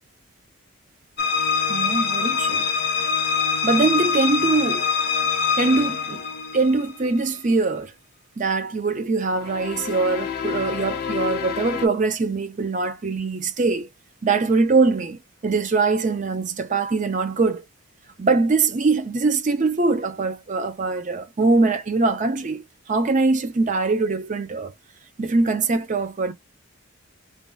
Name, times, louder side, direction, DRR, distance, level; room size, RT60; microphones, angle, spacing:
sound 1, 1.2-7.1 9.4-11.9, left 6 dB, 45° left, 0.6 m, -25 dB
voice 1, 1.7-2.6 3.6-4.8 5.6-6.2 6.5-7.9 8.4-13.9 14.2-17.6 18.2-24.7 25.2-26.3, right 3 dB, 35° right, 0.4 m, -22 dB
2.6 x 2.2 x 3.3 m
head